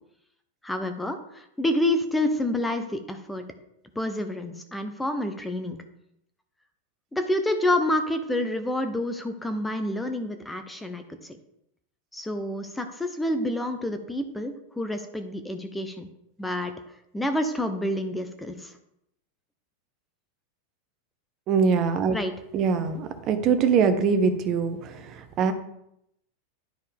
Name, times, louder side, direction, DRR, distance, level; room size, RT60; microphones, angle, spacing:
voice 1, 0.6-3.4 4.0-5.8 7.1-11.4 12.1-16.1 16.4-16.7 17.1-18.8 22.1-22.3, left 1 dB, 10° left, 8 dB, 0.8 m, -28 dB
voice 2, 21.5-22.2 22.5-25.5, right 6 dB, 40° right, 8 dB, 0.9 m, -23 dB
10.5 x 4.4 x 3.5 m, 0.78 s
hypercardioid pair, 100°, 0 cm